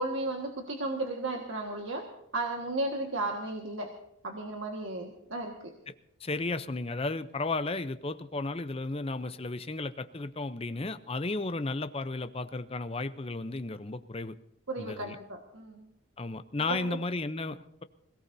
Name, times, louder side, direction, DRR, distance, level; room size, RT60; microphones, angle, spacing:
voice 1, 0.0-2.0 2.3-3.9 4.2-5.7 14.7-15.9 16.7-17.0, right 2 dB, 65° right, 1 dB, 1.7 m, -34 dB
voice 2, 6.2-14.4 14.8-15.2 16.2-17.8, left 3 dB, 25° left, 11 dB, 0.6 m, -34 dB
26.0 x 17.0 x 2.7 m, 0.77 s
head